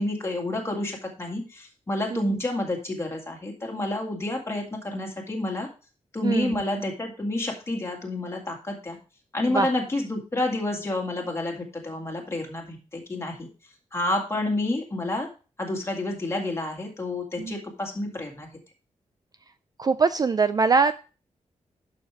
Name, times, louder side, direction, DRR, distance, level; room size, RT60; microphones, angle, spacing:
voice 1, 0.0-5.7 6.1-9.0 9.3-13.5 13.9-15.3 15.6-18.5, left 2 dB, 20° left, 1 dB, 2.0 m, -29 dB
voice 2, 6.2-6.9 9.5-9.7 17.4-17.6 19.8-20.9, right 4 dB, 30° right, 12 dB, 0.3 m, -23 dB
11.0 x 6.4 x 3.3 m, 0.34 s
wide cardioid pair, 180°, 12 cm